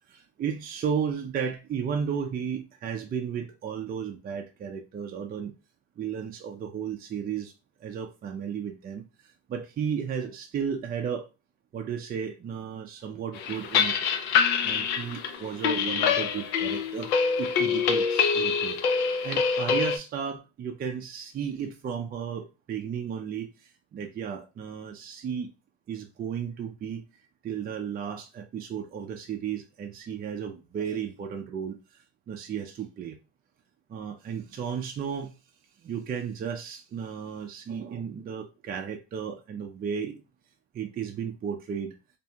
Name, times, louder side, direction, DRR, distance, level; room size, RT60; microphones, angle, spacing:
voice 1, 0.1-5.5 6.0-7.5 7.8-11.3 11.7-14.1 14.6-17.1 17.4-25.5 25.9-27.0 27.4-33.2 33.9-35.3 35.8-40.2 40.7-42.0, right 7 dB, 30° right, 0.4 m, -34 dB
sound 1, 13.3-20.0, left 6 dB, 85° left, 0.5 m, -25 dB
2.5 x 2.2 x 2.7 m
supercardioid pair, 80°, 32 cm